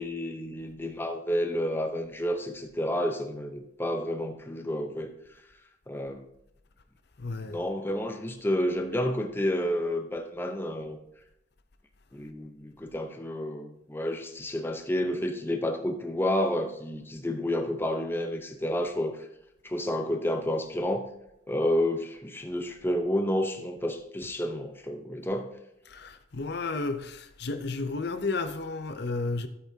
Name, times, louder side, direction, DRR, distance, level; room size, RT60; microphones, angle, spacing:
voice 1, 0.0-5.1 5.9-6.3 7.5-11.0 12.1-19.2 19.6-21.1 21.5-25.5, left 1 dB, 10° left, 0.8 m, -30 dB
voice 2, 7.2-7.6 25.9-29.5, left 3 dB, 60° left, 0.7 m, -32 dB
13.0 x 8.2 x 2.8 m
head